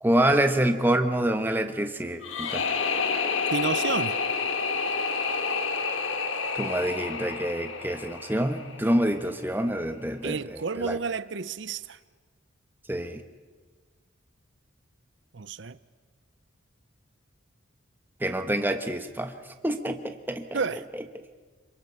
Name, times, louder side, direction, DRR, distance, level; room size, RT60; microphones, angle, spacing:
voice 1, 0.0-2.6 6.5-11.0 12.9-13.2 18.2-19.3 19.6-20.6, right 1 dB, 10° right, 1.1 m, -26 dB
sound 1, 2.2-9.2, left 5 dB, 75° left, 1.5 m, -29 dB
voice 2, 3.5-4.2 10.2-12.0 15.3-15.8 20.5-20.9, right 5 dB, 60° right, 0.6 m, -30 dB
27.0 x 24.0 x 5.6 m
head